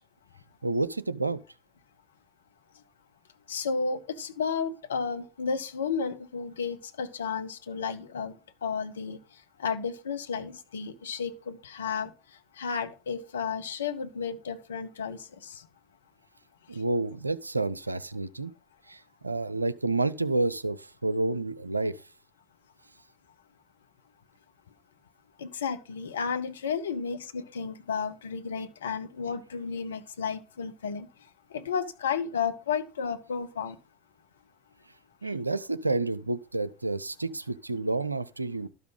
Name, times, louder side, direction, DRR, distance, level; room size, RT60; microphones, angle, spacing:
voice 1, 0.6-1.4 16.7-18.5 18.9-22.0 35.2-38.7, right 2 dB, 85° right, 0.4 m, -29 dB
voice 2, 3.5-8.4 8.6-9.2 9.6-12.1 12.6-15.6 25.4-31.1 31.5-33.8, left 6 dB, 70° left, 0.7 m, -32 dB
12.5 x 5.7 x 3.8 m
figure-of-eight pair, 70°, 0 cm